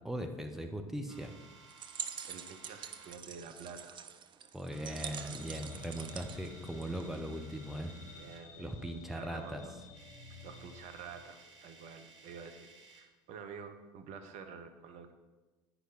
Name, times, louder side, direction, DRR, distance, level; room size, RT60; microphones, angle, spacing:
voice 1, 0.0-1.3 4.5-7.9 8.6-9.6, right 1 dB, ahead, 4 dB, 0.9 m, -39 dB
sound 1, 1.1-3.2 3.9-4.3 4.6-8.5 9.5-9.6 9.8-13.2, right 4 dB, 80° right, 0.9 m, -58 dB
sound 2, 1.7-7.3, right 8 dB, 30° right, 0.5 m, -45 dB
voice 2, 2.3-4.1 8.1-8.7 9.1-9.8 10.4-15.1, right 6 dB, 50° right, 7 dB, 0.9 m, -49 dB
sound 3, 4.9-11.2, left 4 dB, 70° left, 1.3 m, -53 dB
9.6 x 5.8 x 4.1 m, 1.2 s
figure-of-eight pair, 65°, 15 cm